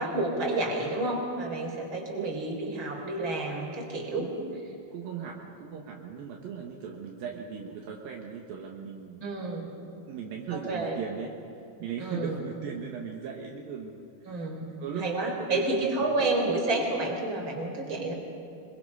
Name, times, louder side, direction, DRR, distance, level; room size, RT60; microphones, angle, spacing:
voice 1, 0.0-4.3 9.2-9.7 10.5-11.0 12.0-12.4 14.3-14.7 15.0-18.1, right 2 dB, 35° right, 1 dB, 4.5 m, -30 dB
voice 2, 4.2-4.6 4.9-9.2 10.1-11.3 11.8-14.5 14.8-16.1, right 7 dB, 70° right, 0 dB, 3.1 m, -38 dB
25.0 x 22.5 x 5.5 m, 2.7 s
omnidirectional pair, 4.3 m